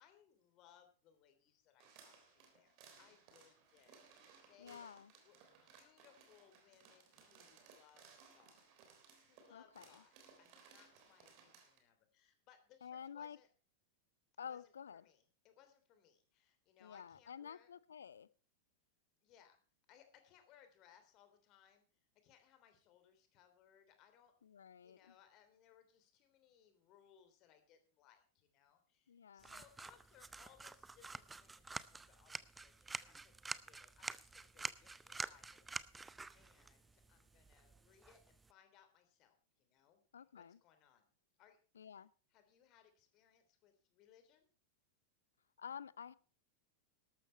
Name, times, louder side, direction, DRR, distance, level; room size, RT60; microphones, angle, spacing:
voice 1, 0.0-8.7 9.2-13.5 14.4-17.7 19.2-19.6 19.9-21.8 22.2-24.3 24.8-41.1 41.4-42.0 42.3-44.5, left 9 dB, 40° left, 8 dB, 3.2 m, -68 dB
sound 1, 1.8-11.8, right 6 dB, 45° right, 3.6 m, -64 dB
voice 2, 4.6-5.1 9.5-10.0 12.8-13.4 14.4-15.0 16.8-18.3 24.4-25.0 29.1-29.5 40.1-40.6 41.8-42.1 45.6-46.1, left 7 dB, 70° left, 20 dB, 0.6 m, -50 dB
sound 2, 29.4-38.5, right 3 dB, 10° right, 0.6 m, -48 dB
13.0 x 12.5 x 4.4 m, 0.37 s
figure-of-eight pair, 90°, 0 cm